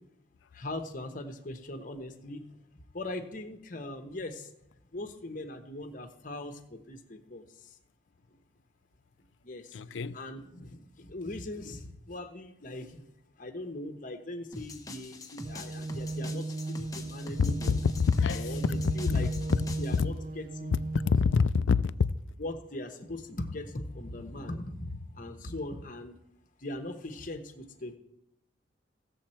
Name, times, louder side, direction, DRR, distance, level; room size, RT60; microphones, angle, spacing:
voice 1, 0.5-2.4 2.9-4.5 4.9-7.7 9.4-13.0 13.4-17.8 18.3-19.3 19.8-20.8 21.1-21.2 22.4-26.2 26.6-28.0, left 1 dB, 45° left, 1.1 m, -40 dB
voice 2, 9.7-10.2 17.4-18.8 19.1-19.3 21.0-21.8, left 5 dB, 75° left, 0.4 m, -26 dB
sound 1, 14.5-20.0, left 2 dB, 20° left, 0.9 m, -44 dB
sound 2, 15.4-21.4, right 2 dB, 45° right, 0.6 m, -36 dB
16.5 x 7.3 x 4.4 m
head